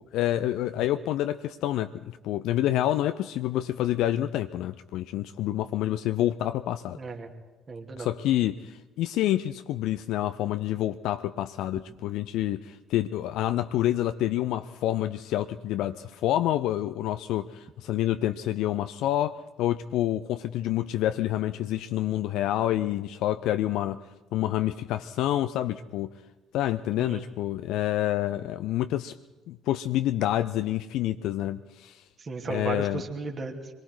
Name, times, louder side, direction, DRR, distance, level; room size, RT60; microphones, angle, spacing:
voice 1, 0.1-7.0 8.0-24.0 24.3-26.1 26.5-29.2 29.5-32.0 32.5-33.0, left 13 dB, 60° left, 11 dB, 0.6 m, -28 dB
voice 2, 6.9-7.3 7.7-8.1 27.0-27.2 32.2-33.7, right 4 dB, 35° right, 2 dB, 2.7 m, -35 dB
26.5 x 22.5 x 4.7 m, 1.2 s
figure-of-eight pair, 50°, 0 cm